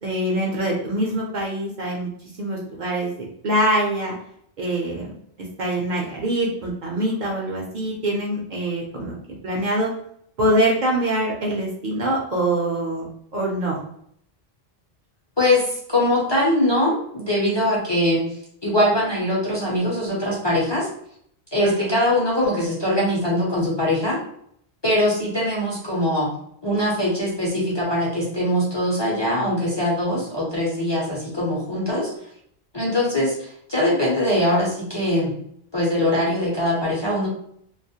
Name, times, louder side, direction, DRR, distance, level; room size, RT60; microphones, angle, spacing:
voice 1, 0.0-2.1 2.4-4.1 4.6-5.1 5.6-9.1 9.4-9.9 10.4-13.0 13.3-13.8 21.6-22.0, right 1 dB, 55° right, -2 dB, 0.6 m, -24 dB
voice 2, 15.4-18.2 18.6-20.9 21.5-24.2 24.8-26.3 26.6-32.1 32.7-35.3 35.7-37.3, left 1 dB, 35° left, -5 dB, 0.5 m, -22 dB
2.3 x 2.0 x 2.7 m, 0.68 s
omnidirectional pair, 1.1 m